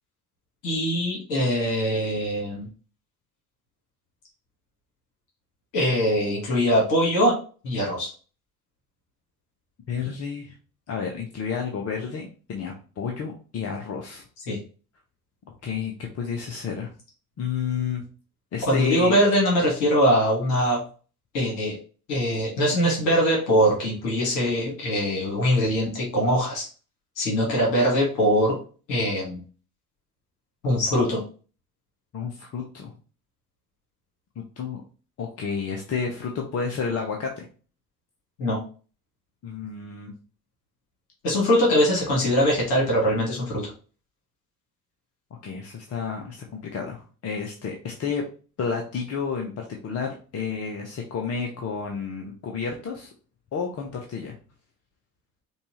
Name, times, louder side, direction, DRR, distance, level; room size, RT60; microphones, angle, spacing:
voice 1, 0.6-2.7 5.7-7.3 7.6-8.1 14.5-14.6 18.7-20.8 21.3-21.7 22.1-26.6 27.2-28.6 28.9-29.4 30.6-31.2 38.4-38.6 41.2-43.7, equal, 60° left, -3 dB, 1.7 m, -22 dB
voice 2, 9.9-10.5 10.9-14.2 15.6-16.9 17.4-18.0 18.5-19.2 32.1-32.9 34.6-34.8 35.2-37.5 39.4-40.1 45.4-48.2 48.6-53.1 53.5-54.4, left 6 dB, 35° left, 2 dB, 0.8 m, -31 dB
5.3 x 2.4 x 3.0 m, 0.37 s
figure-of-eight pair, 55°, 44 cm